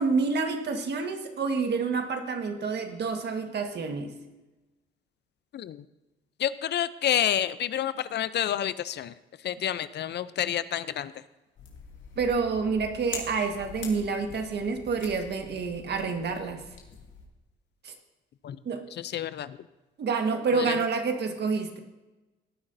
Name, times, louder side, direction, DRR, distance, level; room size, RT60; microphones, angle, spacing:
voice 1, 0.0-4.1 12.2-16.6 17.8-17.9 18.6-18.8 20.0-21.8, right 4 dB, 60° right, 5 dB, 1.6 m, -28 dB
voice 2, 5.5-5.8 6.4-9.1 9.4-11.1 18.4-18.6 19.0-19.6 20.5-20.8, left 10 dB, 60° left, 15 dB, 0.5 m, -29 dB
sound 1, 11.6-17.3, left 5 dB, 75° left, 2.4 m, -44 dB
18.0 x 9.6 x 2.7 m, 1.1 s
cardioid pair, 90°, 20 cm